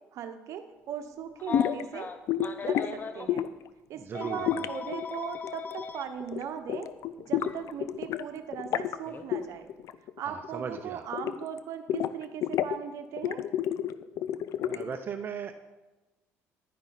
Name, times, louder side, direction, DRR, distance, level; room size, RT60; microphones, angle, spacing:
voice 1, 0.1-2.1 2.6-3.5 3.9-6.9 7.2-9.7 10.2-13.4, right 8 dB, 65° right, 8 dB, 1.0 m, -39 dB
Telephone, 1.4-3.3 4.1-6.0 7.4-7.5 9.1-9.3, left 5 dB, 35° left, 0.9 m, -38 dB
sound 1, 1.5-1.8 2.3-2.9 3.3-3.7 4.5-5.9 6.2-6.4 6.7-8.2 8.5-9.0 9.3-10.2 10.4-11.6 11.9-12.8 13.2-15.0, left 10 dB, 65° left, 0.5 m, -30 dB
voice 2, 4.0-4.7 10.3-11.1 14.7-15.6, right 6 dB, 40° right, 5 dB, 0.7 m, -37 dB
10.5 x 10.5 x 4.1 m, 1.1 s
supercardioid pair, 85°, 6 cm